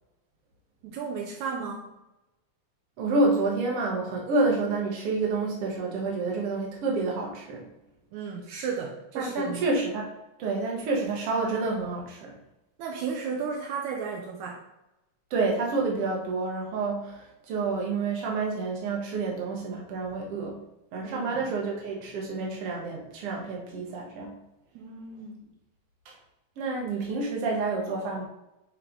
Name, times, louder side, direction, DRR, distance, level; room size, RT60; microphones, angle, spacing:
voice 1, 0.8-1.9 8.1-9.6 12.8-14.6 21.0-21.6 24.7-25.4, right 5 dB, 80° right, 0 dB, 2.1 m, -34 dB
voice 2, 3.0-7.6 9.1-10.1 10.4-12.3 15.3-20.6 20.9-24.3 26.1-26.2 26.6-28.2, right 3 dB, 55° right, -1 dB, 2.1 m, -28 dB
9.2 x 3.3 x 3.8 m, 0.92 s
omnidirectional pair, 3.4 m